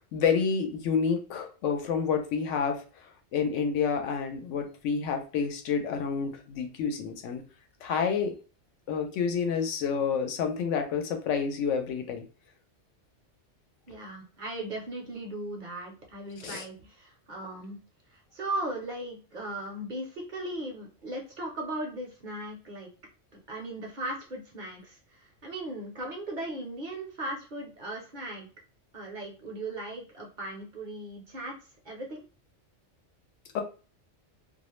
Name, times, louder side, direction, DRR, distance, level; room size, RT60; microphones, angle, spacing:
voice 1, 0.1-2.8 3.3-7.4 7.8-8.4 8.9-12.3 16.4-16.6 33.5-33.6, left 6 dB, 90° left, 5 dB, 0.9 m, -29 dB
voice 2, 13.9-17.8 18.1-22.9 23.5-28.5 28.9-31.5 31.8-32.2, right 1 dB, 50° right, 0 dB, 0.6 m, -37 dB
2.3 x 2.0 x 3.0 m, 0.36 s
omnidirectional pair, 1.2 m